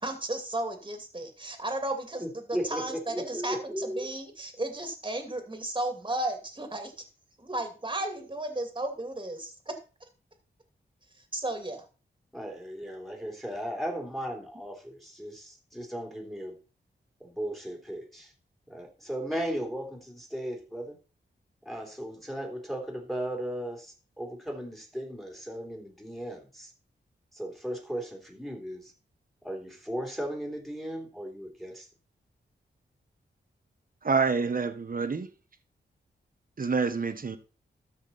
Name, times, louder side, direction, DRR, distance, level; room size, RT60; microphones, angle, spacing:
voice 1, 0.0-2.2 2.5-7.0 7.4-9.7 11.2-11.9, right 1 dB, 25° right, 2.6 m, -34 dB
voice 2, 2.2-4.1 12.3-16.6 17.2-18.3 18.7-21.0 21.6-26.7 27.3-28.9 29.4-31.9, equal, ahead, 3.3 m, -36 dB
voice 3, 34.0-35.3 36.6-37.4, right 4 dB, 45° right, 1.4 m, -27 dB
13.5 x 5.7 x 4.3 m
cardioid pair, 70°, 19 cm